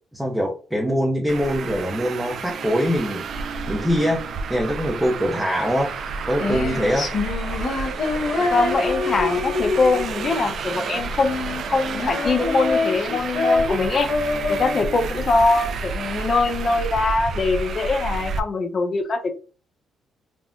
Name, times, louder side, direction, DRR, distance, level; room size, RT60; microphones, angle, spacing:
voice 1, 0.1-3.2 3.7-4.2 4.5-5.9 6.2-7.1, equal, 5° right, -2 dB, 0.6 m, -23 dB
Traffic noise roadway noise, 1.3-18.4, right 4 dB, 65° right, 0.3 m, -30 dB
Female singing, 5.9-16.8, left 3 dB, 65° left, 0.8 m, -26 dB
voice 2, 8.5-14.1 14.5-19.4, left 3 dB, 45° left, 7 dB, 0.5 m, -22 dB
3.4 x 2.1 x 2.4 m, 0.37 s
cardioid pair, 90°, 0 cm